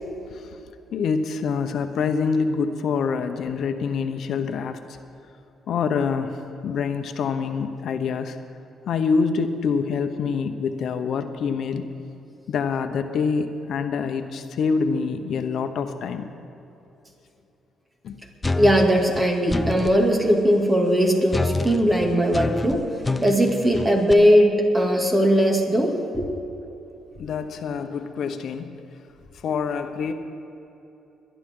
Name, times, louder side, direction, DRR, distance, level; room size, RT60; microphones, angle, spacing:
voice 1, 0.9-4.8 5.7-6.4 6.6-8.4 8.9-11.9 12.5-16.3 18.0-18.2 27.2-28.8 29.4-30.1, left 5 dB, 65° left, 8 dB, 0.9 m, -26 dB
sound 1, 18.4-20.0 21.3-24.1, left 3 dB, 20° left, 0.5 m, -27 dB
voice 2, 18.6-22.8 23.2-26.3, equal, 20° right, 1 dB, 2.5 m, -19 dB
22.0 x 11.0 x 3.8 m, 3.0 s
cardioid pair, 90°, 0 cm